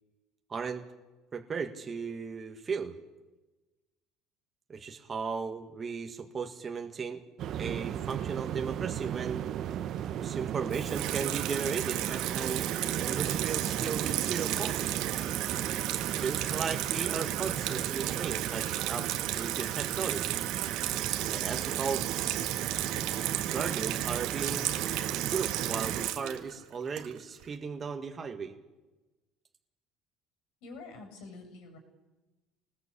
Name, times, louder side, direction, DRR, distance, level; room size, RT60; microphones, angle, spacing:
voice 1, 0.5-0.8 1.3-2.9 4.7-7.2 7.6-9.4 10.2-12.7 13.0-14.8 15.9-20.4 21.2-22.0 23.5-24.8 25.3-28.5, right 5 dB, 25° right, 5 dB, 1.7 m, -36 dB
sound 1, 7.4-26.1, right 10 dB, 45° right, 1.1 m, -36 dB
Water tap faucet / Sink (filling or washing), 10.7-27.4, right 13 dB, 70° right, 1.7 m, -33 dB
voice 2, 30.6-31.8, left 3 dB, 75° left, 6 dB, 7.3 m, -46 dB
26.5 x 20.0 x 8.5 m, 1.1 s
cardioid pair, 150°, 0 cm